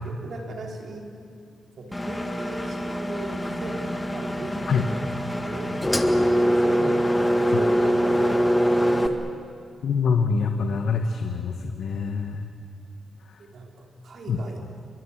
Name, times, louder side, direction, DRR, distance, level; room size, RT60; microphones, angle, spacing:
voice 1, 0.0-1.1 1.8-6.1 6.6-9.2 13.4-14.7, right 2 dB, 70° right, 1 dB, 4.4 m, -37 dB
Engine, 1.9-9.1, equal, 15° left, 1.8 m, -23 dB
voice 2, 9.8-12.5 13.3-13.4 14.3-14.4, left 5 dB, 75° left, 5 dB, 1.4 m, -25 dB
29.0 x 23.5 x 7.5 m, 2.2 s
cardioid pair, 85°, 0 cm